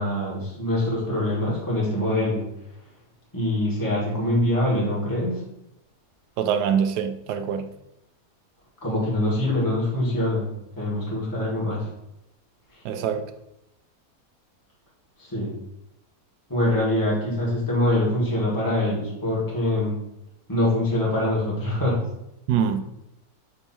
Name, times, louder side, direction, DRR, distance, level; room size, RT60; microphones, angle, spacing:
voice 1, 0.0-2.4 3.3-5.4 8.8-10.5 10.8-11.9 15.2-15.5 16.5-20.0 20.5-22.0, left 1 dB, 10° left, 1.9 m, -24 dB
voice 2, 6.4-7.7 12.8-13.2 22.5-22.8, right 8 dB, 90° right, 1.2 m, -24 dB
7.2 x 3.4 x 4.3 m
omnidirectional pair, 1.7 m